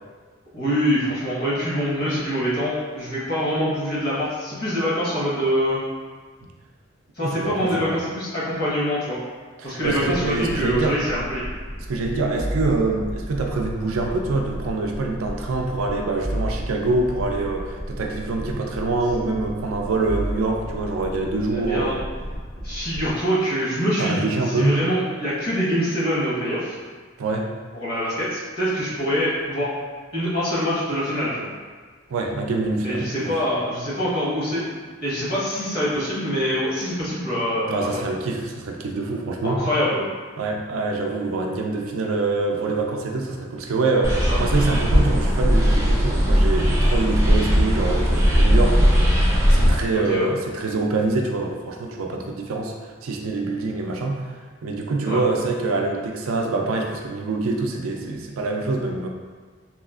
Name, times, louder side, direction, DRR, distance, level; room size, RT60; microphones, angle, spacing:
voice 1, 0.5-5.8 7.2-9.2 9.6-11.4 21.5-21.9 22.6-26.8 27.7-29.7 30.1-31.5 32.8-34.7 35.0-38.0 39.4-40.0 44.3-44.4 50.1-50.3 54.9-55.2, equal, 50° left, -8 dB, 0.9 m, -24 dB
voice 2, 7.2-7.9 9.6-11.0 11.9-22.0 24.0-24.8 27.2-27.5 32.1-33.3 37.7-39.6 40.4-54.3 54.6-59.1, right 3 dB, 85° right, 1 dB, 0.4 m, -25 dB
sound 1, 9.8-23.1, equal, 75° left, 0.7 m, -33 dB
sound 2, 44.0-49.7, equal, 15° right, 0.4 m, -18 dB
3.0 x 2.3 x 2.4 m, 1.5 s
head